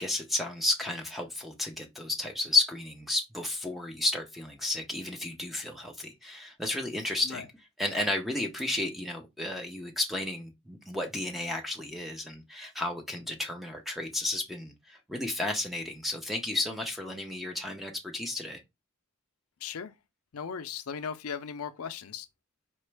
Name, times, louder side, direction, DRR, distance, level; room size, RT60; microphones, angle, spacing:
voice 1, 0.0-7.5 7.8-18.6, left 2 dB, ahead, 0.7 m, -32 dB
voice 2, 19.6-19.9 20.3-22.3, left 6 dB, 85° left, 0.5 m, -37 dB
4.4 x 3.0 x 3.3 m
head